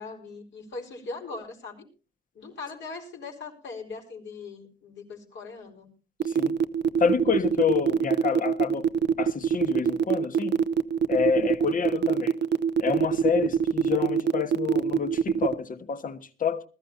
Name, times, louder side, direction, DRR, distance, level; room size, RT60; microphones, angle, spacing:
voice 1, 0.0-1.9 2.3-5.9, left 3 dB, 65° left, 4.6 m, -40 dB
sound 1, 6.2-15.5, right 7 dB, 60° right, 0.7 m, -23 dB
voice 2, 6.3-6.6 7.0-8.9 9.2-10.6 11.1-12.3 12.8-16.6, left 6 dB, 45° left, 1.4 m, -28 dB
20.5 x 13.5 x 2.8 m
cardioid pair, 90°, 20 cm